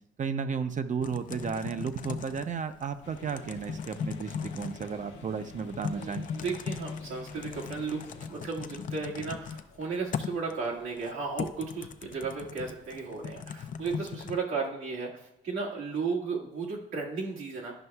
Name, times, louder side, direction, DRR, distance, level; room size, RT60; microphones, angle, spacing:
voice 1, 0.2-6.3, right 6 dB, 40° right, 10 dB, 0.6 m, -33 dB
Typing, 1.0-14.4, left 7 dB, 40° left, 0.4 m, -39 dB
sound 1, 3.0-8.3, left 4 dB, 70° left, 1.0 m, -47 dB
voice 2, 5.9-17.7, right 4 dB, 85° right, -3 dB, 1.8 m, -35 dB
11.0 x 5.3 x 2.3 m, 0.87 s
cardioid pair, 90°, 20 cm